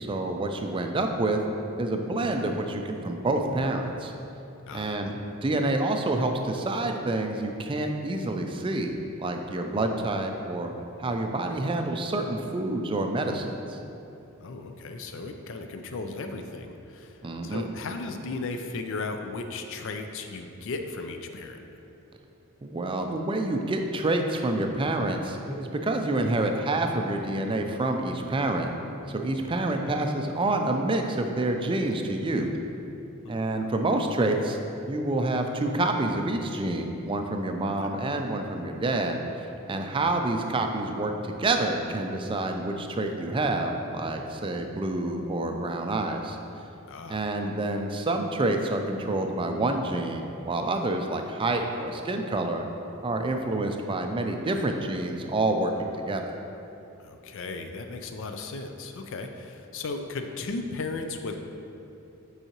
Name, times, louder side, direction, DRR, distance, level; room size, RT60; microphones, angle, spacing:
voice 1, 0.0-1.4 1.8-4.1 4.7-10.7 11.0-13.8 17.2-17.7 22.6-28.7 29.1-32.5 33.3-34.6 34.9-46.4 47.1-52.6 53.0-56.3, right 2 dB, 25° right, 4 dB, 0.4 m, -28 dB
voice 2, 4.7-5.1 14.4-21.6 33.2-33.3 37.8-37.9 46.9-47.2 57.0-61.4, left 3 dB, 60° left, 6 dB, 0.4 m, -36 dB
8.0 x 4.7 x 2.9 m, 2.8 s
head